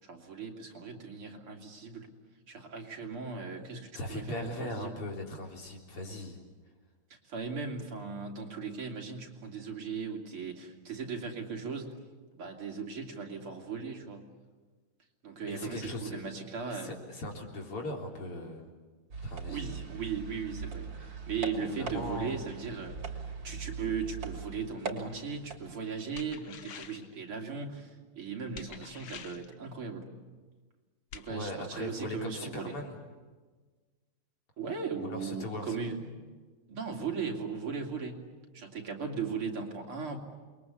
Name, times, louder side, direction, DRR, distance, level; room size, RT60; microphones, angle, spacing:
voice 1, 0.0-2.1 2.5-4.9 7.1-11.9 12.3-14.3 15.2-17.0 19.5-30.1 31.1-32.7 34.6-36.3 36.7-40.2, right 5 dB, 75° right, 2 dB, 3.9 m, -38 dB
voice 2, 3.9-6.4 15.5-16.2 16.7-18.7 19.2-19.7 21.6-22.4 31.3-32.9 34.9-35.8, left 1 dB, 85° left, 1 dB, 4.7 m, -39 dB
sound 1, 19.1-25.6, right 5 dB, 55° right, 3.5 m, -40 dB
sound 2, 26.2-27.1 28.5-29.5 31.1-31.3, left 8 dB, 65° left, 2.0 m, -46 dB
28.5 x 22.5 x 8.4 m, 1.4 s
omnidirectional pair, 2.4 m